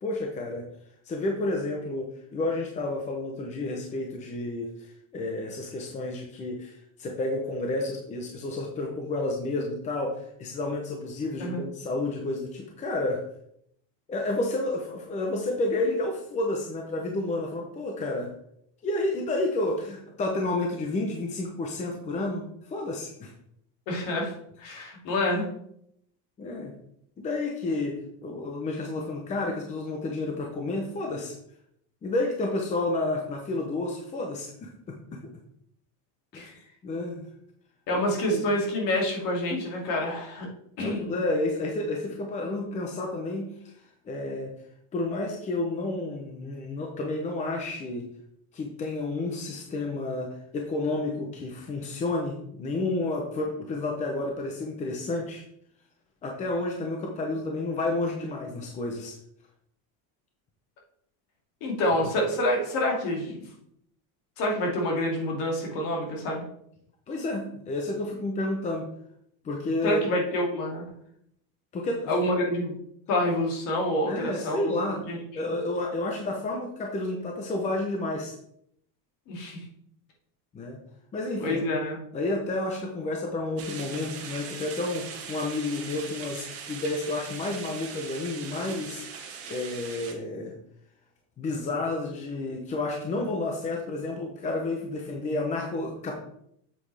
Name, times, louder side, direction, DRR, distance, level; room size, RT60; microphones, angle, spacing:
voice 1, 0.0-0.6 1.1-13.2 14.1-18.3 18.8-23.3 26.4-26.7 27.2-27.9 28.2-31.3 32.0-35.2 36.3-36.5 36.8-37.2 37.9-38.0 38.3-38.5 40.8-44.5 44.9-48.1 48.5-55.4 56.2-59.1 67.1-68.9 69.4-70.0 71.7-72.2 74.1-75.0 75.3-78.3 80.5-80.8 81.1-81.6 82.1-90.6 91.4-96.1, left 2 dB, 15° left, 1 dB, 0.7 m, -30 dB
voice 2, 23.9-25.5 36.3-36.5 37.9-40.5 40.8-41.2 61.6-63.5 64.4-66.4 69.8-70.8 72.1-72.8 73.1-74.8 75.1-75.2 79.3-79.6 81.4-82.0, left 1 dB, 50° left, 0 dB, 2.6 m, -27 dB
sound 1, 83.6-90.1, right 6 dB, 35° right, 1.4 m, -40 dB
8.5 x 7.7 x 3.4 m, 0.72 s
cardioid pair, 175°, 43 cm